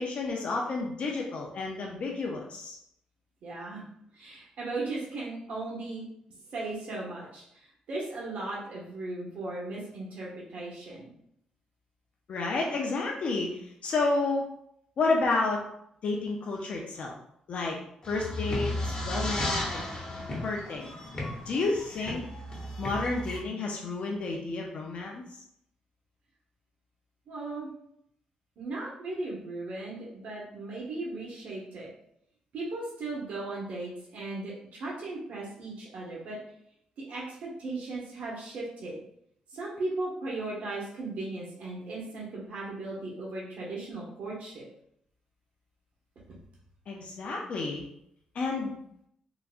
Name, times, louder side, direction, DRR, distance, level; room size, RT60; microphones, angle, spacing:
voice 1, 0.0-2.8 12.3-14.5 15.0-15.6 16.0-17.1 17.5-17.8 18.1-19.8 20.4-20.9 21.5-22.2 22.8-25.2 46.9-47.8 48.3-48.7, left 3 dB, 55° left, -1 dB, 0.5 m, -30 dB
voice 2, 3.4-3.8 4.1-6.0 6.5-11.1 27.3-27.7 28.6-31.9 32.5-36.4 37.0-39.0 39.5-44.7 46.3-46.4, right 2 dB, 70° right, -5 dB, 0.9 m, -37 dB
sound 1, 18.0-23.4, left 1 dB, 30° left, 1.1 m, -34 dB
3.8 x 2.2 x 2.4 m, 0.73 s
cardioid pair, 100°, 3 cm